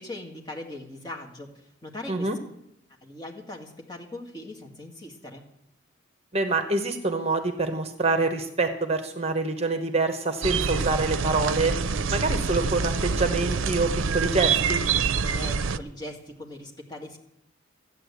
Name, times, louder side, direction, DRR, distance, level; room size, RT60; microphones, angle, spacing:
voice 1, 0.0-2.3 3.0-5.4 15.2-17.2, left 1 dB, 20° left, 0 dB, 2.0 m, -40 dB
voice 2, 6.3-11.8 12.1-14.8, right 3 dB, 30° right, 7 dB, 1.1 m, -26 dB
sound 1, 10.4-15.8, right 5 dB, 85° right, 0.6 m, -26 dB
14.5 x 9.2 x 8.3 m, 0.81 s
head